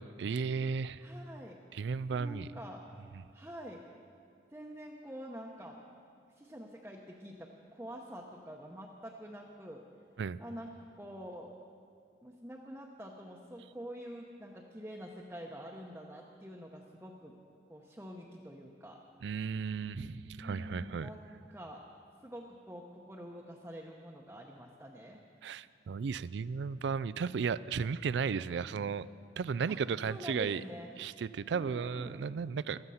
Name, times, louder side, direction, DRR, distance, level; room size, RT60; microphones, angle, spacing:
voice 1, 0.0-1.0 1.7-2.5 10.2-10.4 19.2-21.1 25.4-29.1 29.4-30.6 31.0-32.8, right 5 dB, 75° right, 17 dB, 0.4 m, -34 dB
voice 2, 1.0-1.6 2.1-2.8 3.3-3.8 4.5-5.8 6.4-9.8 10.4-11.5 12.2-17.3 17.7-19.0 20.2-21.2 21.5-21.8 22.2-25.2 29.7-29.8 30.1-30.9 31.5-32.3, equal, 10° right, -2 dB, 0.9 m, -46 dB
16.0 x 13.5 x 5.6 m, 2.4 s
head